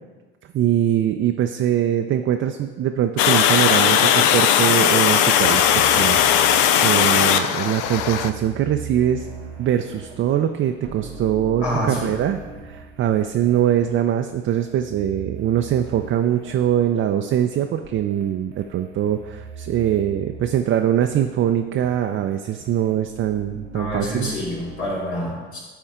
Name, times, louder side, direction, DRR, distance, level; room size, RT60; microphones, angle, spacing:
voice 1, 0.5-9.3 9.6-24.3, right 10 dB, 40° right, 5 dB, 0.5 m, -22 dB
Water, 3.2-8.3, left 9 dB, 60° left, 0.6 m, -17 dB
sound 1, 5.3-24.9, right 4 dB, 85° right, 1.2 m, -41 dB
voice 2, 11.6-12.2 23.5-25.6, equal, 85° left, -5 dB, 2.4 m, -27 dB
11.5 x 4.4 x 3.7 m, 1.3 s
hypercardioid pair, 65°, 33 cm